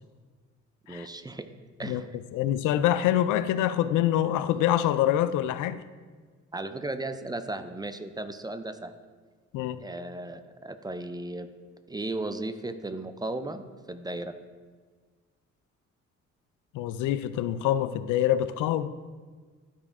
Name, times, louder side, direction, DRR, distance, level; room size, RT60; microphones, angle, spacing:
voice 1, 0.9-1.5 1.8-2.1 6.5-8.9 9.8-11.5 11.9-14.4, right 2 dB, 15° right, 10 dB, 0.5 m, -35 dB
voice 2, 2.3-5.8 9.5-9.8 16.7-18.9, left 12 dB, 90° left, 13 dB, 0.5 m, -25 dB
12.0 x 4.8 x 3.6 m, 1.5 s
cardioid pair, 90°, 30 cm